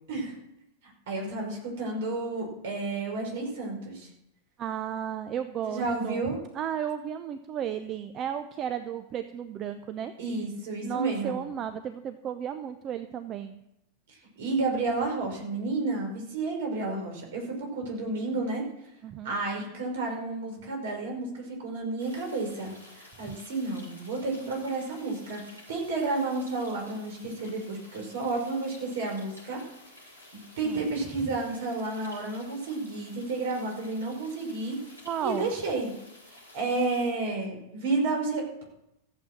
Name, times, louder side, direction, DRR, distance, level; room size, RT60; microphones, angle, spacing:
voice 1, 1.1-4.1 5.6-6.4 10.2-11.4 14.1-18.6 19.2-29.6 30.6-34.8 35.2-35.9 36.3-38.6, right 3 dB, 55° right, 1 dB, 5.4 m, -31 dB
voice 2, 4.6-10.1 10.8-13.6 19.0-19.3 23.3-23.4 30.6-30.8 35.1-35.5, right 9 dB, 30° right, 10 dB, 0.8 m, -34 dB
sound 1, 22.0-37.1, left 1 dB, 90° right, 6.0 m, -52 dB
14.5 x 7.9 x 7.5 m, 0.86 s
figure-of-eight pair, 90°, 0 cm